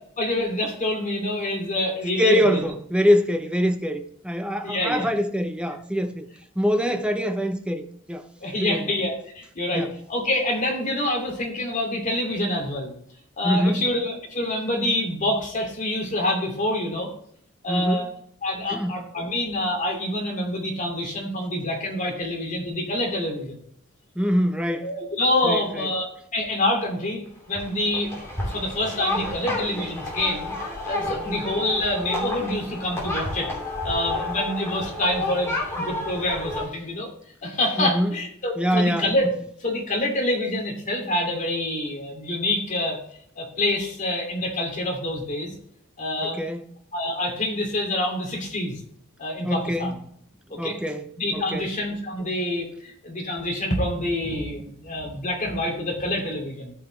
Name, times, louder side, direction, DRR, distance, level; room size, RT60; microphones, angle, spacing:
voice 1, 0.2-2.6 4.6-5.1 8.4-12.9 13.4-17.1 17.6-18.0 18.4-23.6 24.8-27.2 27.5-33.5 33.8-37.1 37.4-39.3 39.6-43.0 43.4-45.5 46.0-46.4 46.9-48.8 49.2-50.0 50.5-50.8 51.2-56.7, left 1 dB, 35° left, 2.6 m, -26 dB
voice 2, 2.2-6.3 6.6-8.3 8.6-8.9 9.7-10.0 13.4-13.9 17.7-18.1 18.7-19.0 24.2-24.9 25.4-25.9 31.0-31.4 37.8-38.2 38.6-39.1 46.2-46.6 49.4-50.0 50.5-51.7, equal, 5° right, 0.7 m, -24 dB
sound 1, 27.5-36.6, left 2 dB, 10° left, 2.7 m, -31 dB
14.0 x 5.8 x 3.2 m
head